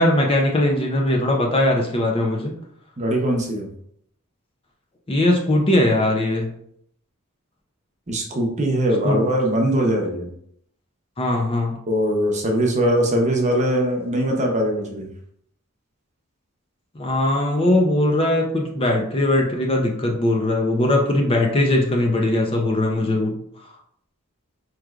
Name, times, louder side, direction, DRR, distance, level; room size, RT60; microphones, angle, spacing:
voice 1, 0.0-2.5 5.1-6.5 9.0-9.2 11.2-11.8 17.0-23.3, left 1 dB, 25° left, 1 dB, 0.5 m, -20 dB
voice 2, 3.0-3.7 8.1-10.3 11.9-15.1, right 1 dB, 35° right, 1 dB, 0.8 m, -21 dB
4.6 x 3.1 x 2.4 m, 0.69 s
head